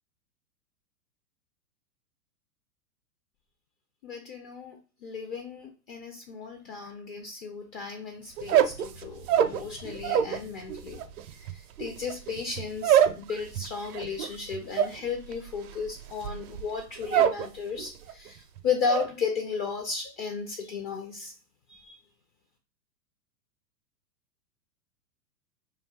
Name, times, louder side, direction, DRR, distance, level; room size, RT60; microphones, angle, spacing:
voice 1, 4.0-11.0 11.5-21.3 21.7-22.0, left 5 dB, 35° left, 4 dB, 0.6 m, -34 dB
sound 1, 8.4-10.4 10.7-17.5 17.8-18.3 18.6-19.1, right 10 dB, 65° right, 0.5 m, -26 dB
2.5 x 2.3 x 3.5 m, 0.34 s
hypercardioid pair, 105°, 47 cm